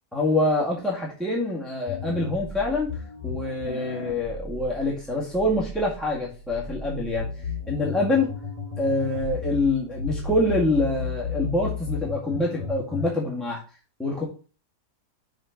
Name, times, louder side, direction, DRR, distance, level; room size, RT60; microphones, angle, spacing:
voice 1, 0.1-2.9 3.2-7.3 7.7-8.3 8.8-13.6 14.0-14.2, left 2 dB, ahead, -5 dB, 1.8 m, -25 dB
sound 1, 1.9-13.1, left 5 dB, 20° left, 2.1 m, -34 dB
6.4 x 4.5 x 5.8 m, 0.36 s
omnidirectional pair, 1.8 m